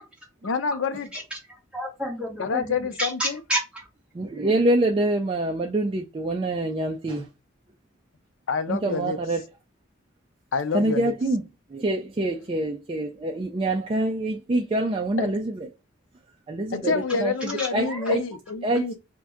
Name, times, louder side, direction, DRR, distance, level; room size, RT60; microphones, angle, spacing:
voice 1, 0.4-1.1 2.4-3.4 8.5-9.2 10.5-11.1 15.2-15.3 16.7-18.9, left 5 dB, 85° left, 0.5 m, -27 dB
voice 2, 1.7-3.9 17.6-18.2, equal, 5° right, 1.4 m, -30 dB
voice 3, 4.1-7.3 8.7-9.4 10.7-15.7 16.5-18.2 18.6-18.9, right 1 dB, 30° right, 0.3 m, -26 dB
2.6 x 2.2 x 3.5 m
head